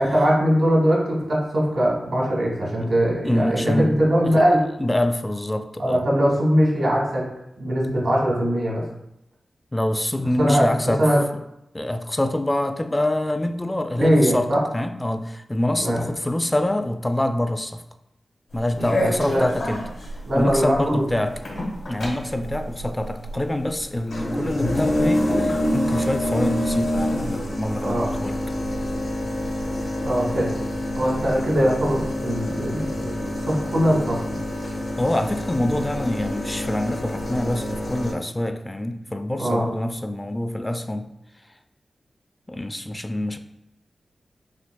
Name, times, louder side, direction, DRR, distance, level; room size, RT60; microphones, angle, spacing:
voice 1, 0.0-4.6 5.8-7.3 7.6-8.8 10.4-10.7 11.0-11.2 14.0-14.6 15.7-16.0 18.7-19.4 20.2-21.0 27.8-28.1 30.0-30.6 30.9-34.2 39.4-39.7, equal, 80° right, -3 dB, 1.4 m, -21 dB
voice 2, 3.2-3.9 4.2-4.4 4.8-6.1 9.7-11.1 11.7-17.8 18.5-19.8 20.3-21.4 21.9-28.4 35.0-41.1 42.5-43.4, left 1 dB, 20° left, 7 dB, 0.3 m, -25 dB
sound 1, 18.5-38.1, left 1 dB, 90° left, 1.4 m, -27 dB
6.0 x 2.8 x 2.2 m, 0.83 s
cardioid pair, 45°, 0 cm